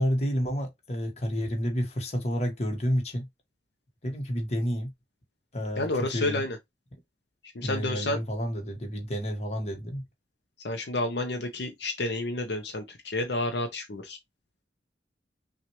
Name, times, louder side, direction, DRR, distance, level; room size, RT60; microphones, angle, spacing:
voice 1, 0.0-3.3 4.0-4.9 5.5-6.4 7.6-10.0, equal, 40° left, 1.3 m, -30 dB
voice 2, 5.8-6.6 7.5-8.2 10.6-14.2, left 2 dB, 75° left, 0.7 m, -30 dB
5.9 x 2.5 x 3.0 m
head